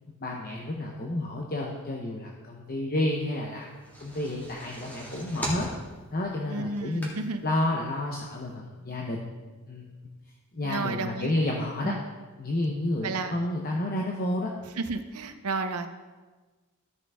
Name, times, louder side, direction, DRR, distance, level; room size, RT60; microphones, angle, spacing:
voice 1, 0.1-3.7 4.0-5.7 6.1-7.1 7.4-9.2 9.7-9.9 10.5-11.9 12.4-14.5, left 1 dB, 40° left, -1 dB, 0.8 m, -30 dB
sound 1, 3.6-7.5 8.0-8.1 8.4-8.5, right 1 dB, 10° left, 1.8 m, -39 dB
voice 2, 6.5-7.4 10.6-11.3 11.8-12.0 13.0-13.4 14.8-15.9, right 3 dB, 80° right, 8 dB, 0.7 m, -32 dB
13.5 x 6.1 x 3.5 m, 1.3 s
head